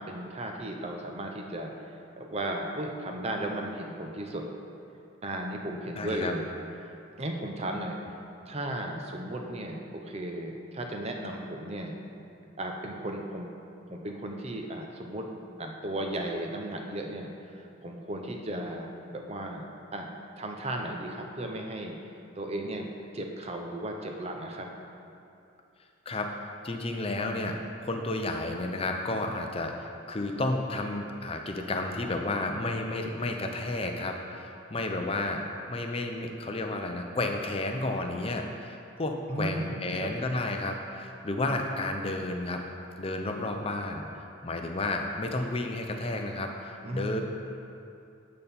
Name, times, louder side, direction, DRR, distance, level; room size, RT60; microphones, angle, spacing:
voice 1, 0.0-1.7 2.2-4.5 5.2-6.4 7.2-8.0 8.5-12.0 12.6-13.5 13.9-15.3 15.6-19.7 19.9-20.1 20.4-22.0 22.4-22.9 23.1-24.7 39.3-40.1 46.8-47.2, right 1 dB, 30° right, 2 dB, 0.6 m, -35 dB
voice 2, 6.0-6.3 26.1-26.3 26.6-27.6 27.9-35.4 35.7-42.6 43.0-44.1 44.4-47.2, left 2 dB, 25° left, 3 dB, 0.5 m, -32 dB
8.9 x 5.3 x 4.2 m, 2.7 s
head